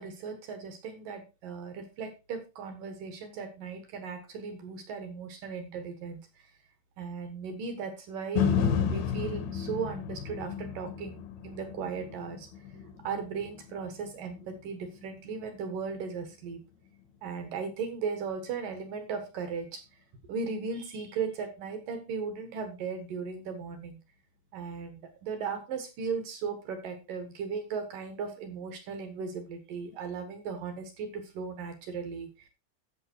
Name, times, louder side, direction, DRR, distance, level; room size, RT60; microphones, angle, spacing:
voice 1, 0.0-6.5 7.0-16.6 17.2-19.8 20.3-24.0 24.5-32.5, right 5 dB, 60° right, 8 dB, 2.4 m, -37 dB
sound 1, 8.4-16.5 17.0-17.1, left 7 dB, 70° left, 2.7 m, -33 dB
11.0 x 7.4 x 4.4 m, 0.27 s
omnidirectional pair, 5.5 m